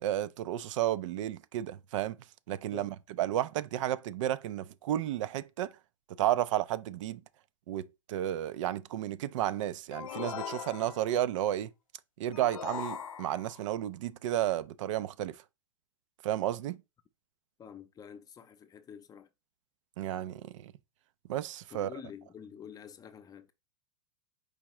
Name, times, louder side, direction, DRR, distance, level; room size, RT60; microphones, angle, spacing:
voice 1, 0.0-2.2 2.5-2.9 3.2-5.7 6.2-7.2 7.7-11.7 12.2-15.4 16.2-16.8 20.0-20.7 21.3-21.9, right 12 dB, 65° right, 0.4 m, -32 dB
sound 1, 9.9-11.2 12.3-13.6, left 8 dB, 90° left, 0.6 m, -40 dB
voice 2, 17.6-19.3 21.7-23.5, left 8 dB, 20° left, 0.5 m, -48 dB
4.8 x 3.5 x 3.0 m
hypercardioid pair, 115°, 17 cm